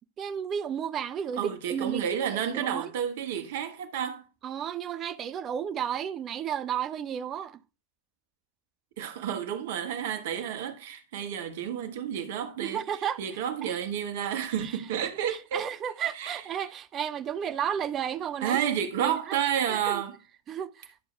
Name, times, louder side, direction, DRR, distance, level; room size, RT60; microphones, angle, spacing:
voice 1, 0.2-1.4 1.7-2.0 2.5-2.9 4.4-7.6 12.6-13.2 13.6-13.8 14.6-14.8 15.3-18.6 19.0-19.4 19.7-20.0 20.5-20.9, right 9 dB, 30° right, 0.6 m, -33 dB
voice 2, 1.4-4.2 9.0-12.8 13.2-15.6 16.1-16.4 18.4-20.2, right 9 dB, 55° right, 1.6 m, -30 dB
11.0 x 6.8 x 3.4 m
figure-of-eight pair, 90°, 0 cm